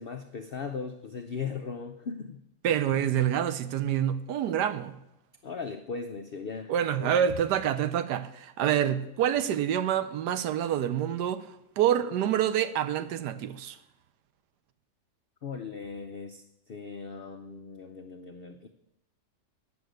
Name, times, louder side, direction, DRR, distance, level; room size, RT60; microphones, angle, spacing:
voice 1, 0.0-2.4 5.4-7.1 15.4-18.7, left 5 dB, 75° left, 0.5 m, -38 dB
voice 2, 2.6-4.9 6.7-11.4 11.8-13.8, right 10 dB, 85° right, 1.3 m, -27 dB
9.5 x 6.3 x 7.9 m
omnidirectional pair, 1.8 m